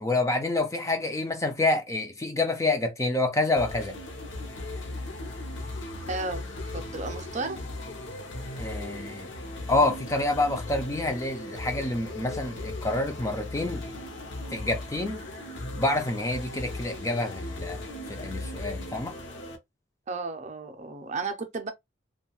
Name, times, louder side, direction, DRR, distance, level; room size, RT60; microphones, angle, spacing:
voice 1, 0.0-4.0 8.6-9.3 9.7-13.8 14.5-15.2 15.8-17.8 18.1-19.1, left 2 dB, 15° left, 0.4 m, -27 dB
sound 1, 3.6-19.6, left 2 dB, 65° left, 0.7 m, -37 dB
voice 2, 6.1-6.5 6.7-7.6 20.1-21.7, right 3 dB, 35° right, 0.5 m, -33 dB
2.5 x 2.3 x 2.9 m
head